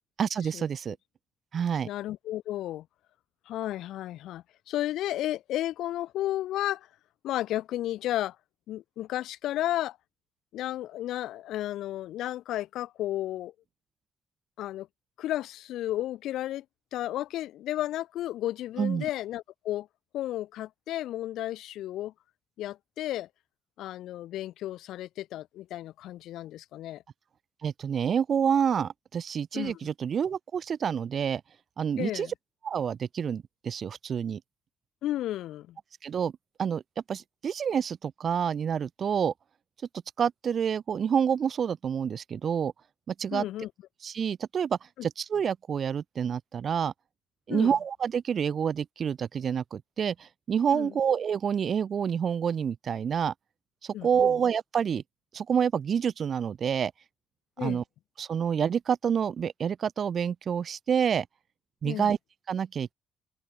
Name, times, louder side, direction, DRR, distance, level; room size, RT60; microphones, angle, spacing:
voice 1, 0.2-1.0 1.5-1.9 18.8-19.1 27.6-31.4 31.8-32.3 32.6-34.4 36.0-36.3 36.6-36.8 37.1-39.3 40.2-42.7 43.1-43.4 44.0-46.9 47.5-53.3 53.8-55.0 55.3-56.9 57.6-57.8 58.2-61.3 61.8-62.2 62.5-62.9, right 7 dB, 55° right, 0.8 m, -28 dB
voice 2, 1.8-2.8 3.5-6.9 7.2-8.4 8.7-10.0 10.5-13.5 14.6-14.9 15.2-16.6 16.9-19.9 20.1-22.1 22.6-23.3 23.8-27.0 29.5-29.8 32.0-32.3 35.0-35.8 43.3-43.7 47.5-47.7 50.7-50.9 53.9-54.4 57.6-57.8 61.8-62.1, left 14 dB, 85° left, 3.8 m, -33 dB
cardioid pair, 90°, 0 cm